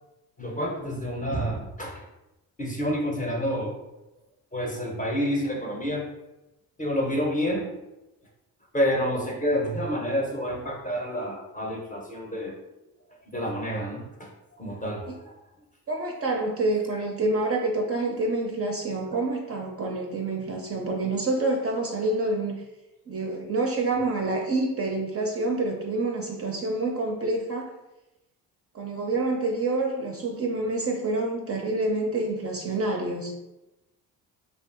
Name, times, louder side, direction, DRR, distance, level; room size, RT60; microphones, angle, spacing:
voice 1, 0.4-2.0 2.6-3.8 4.5-6.1 6.8-7.7 8.7-12.5 13.3-14.3 14.6-15.3, equal, 20° left, -1 dB, 0.6 m, -28 dB
voice 2, 15.9-22.6 23.1-27.7 28.7-33.4, right 2 dB, 35° right, 1 dB, 0.4 m, -27 dB
2.6 x 2.3 x 2.4 m, 0.99 s
supercardioid pair, 60°, 44 cm